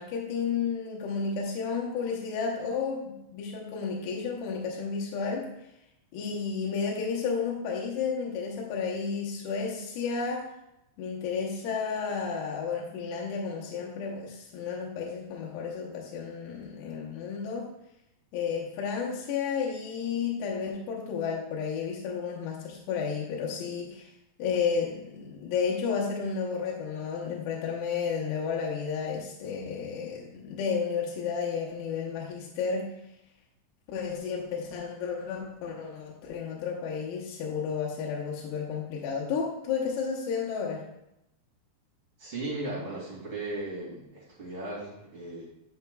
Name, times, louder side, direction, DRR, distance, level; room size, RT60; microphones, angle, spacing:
voice 1, 0.0-5.5 6.1-10.4 11.0-17.7 18.3-24.1 24.4-32.9 33.9-40.8, left 6 dB, 80° left, -3 dB, 2.9 m, -32 dB
voice 2, 42.2-45.4, right 2 dB, 35° right, -6 dB, 2.8 m, -36 dB
10.5 x 5.9 x 2.3 m, 0.83 s
omnidirectional pair, 4.9 m